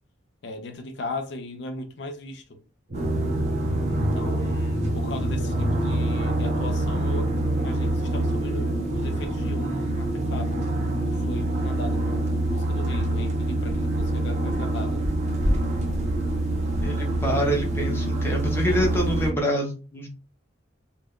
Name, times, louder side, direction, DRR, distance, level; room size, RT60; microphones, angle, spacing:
voice 1, 0.4-2.6 3.9-10.5 11.1-15.0, left 2 dB, 65° left, 0.5 m, -38 dB
sound 1, 2.9-19.3, right 1 dB, 35° right, 0.5 m, -26 dB
sound 2, 2.9-19.4, equal, 60° right, 0.9 m, -32 dB
voice 2, 16.8-20.1, equal, 10° left, 0.6 m, -26 dB
2.2 x 2.0 x 3.5 m
head